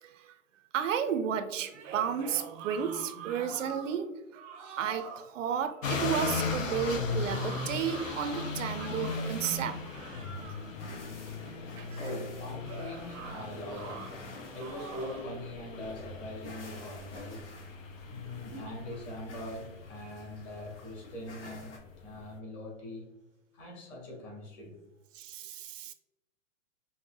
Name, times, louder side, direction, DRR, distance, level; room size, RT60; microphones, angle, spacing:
voice 1, 0.0-0.3 0.7-4.4 4.8-10.1 11.8-12.0 25.1-25.9, right 8 dB, 75° right, 10 dB, 0.5 m, -33 dB
sound 1, 1.6-4.0 4.3-5.3 6.6-9.4 9.8-10.7 12.6-14.1 14.5-15.3, right 5 dB, 25° right, 0.5 m, -45 dB
sound 2, 5.8-22.3, left 4 dB, 85° left, 0.7 m, -38 dB
sound 3, 8.6-21.8, left 2 dB, 65° left, 1.1 m, -51 dB
voice 2, 11.7-17.5 18.1-23.1 23.5-24.8, left 1 dB, 35° left, -1 dB, 1.4 m, -42 dB
5.4 x 2.1 x 2.2 m, 0.95 s
hypercardioid pair, 130°, 38 cm